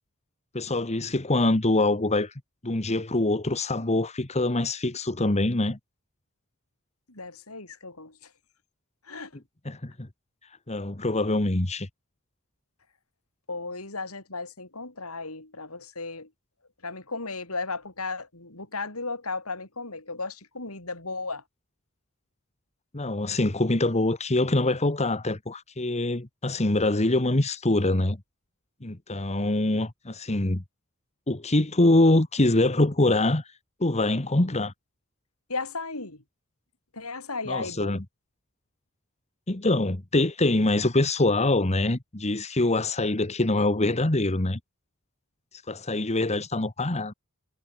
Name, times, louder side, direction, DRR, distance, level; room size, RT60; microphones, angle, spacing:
voice 1, 0.5-2.3 2.6-5.8 9.6-10.1 10.7-11.9 22.9-28.2 28.8-30.6 31.3-33.4 33.8-34.7 37.5-38.0 39.5-44.6 45.7-47.1, left 2 dB, 30° left, 1.5 m, -24 dB
voice 2, 7.1-8.2 9.1-9.3 13.5-16.3 16.8-21.4 35.5-36.2 36.9-38.0, left 3 dB, 85° left, 6.9 m, -35 dB
head